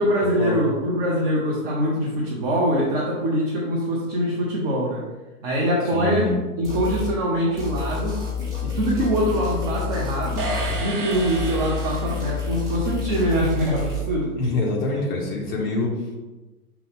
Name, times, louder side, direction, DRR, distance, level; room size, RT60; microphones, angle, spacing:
voice 1, 0.0-5.0 5.4-8.2 8.6-10.5 10.8-14.4, equal, 30° right, -4 dB, 0.8 m, -23 dB
voice 2, 5.9-6.4 14.4-15.9, left 2 dB, 15° left, -2 dB, 0.4 m, -25 dB
sound 1, 6.6-7.2 7.6-10.9 11.1-14.0, left 5 dB, 10° right, 1.1 m, -29 dB
sound 2, 10.4-12.6, right 3 dB, 80° right, 1.0 m, -31 dB
5.3 x 2.3 x 3.6 m, 1.1 s
figure-of-eight pair, 110°, 46 cm